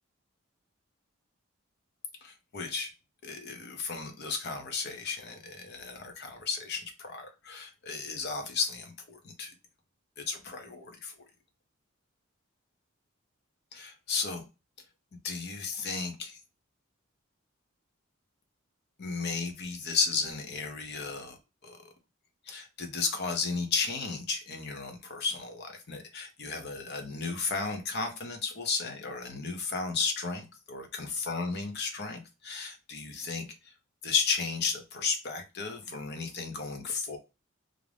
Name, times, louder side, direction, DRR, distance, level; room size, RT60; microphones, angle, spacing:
voice 1, 2.2-2.9 3.2-9.5 10.2-11.1 13.7-14.4 15.2-16.4 19.0-21.4 21.6-21.8 22.5-33.7 34.0-37.2, left 4 dB, 50° left, 0.6 m, -34 dB
2.5 x 2.1 x 3.2 m
head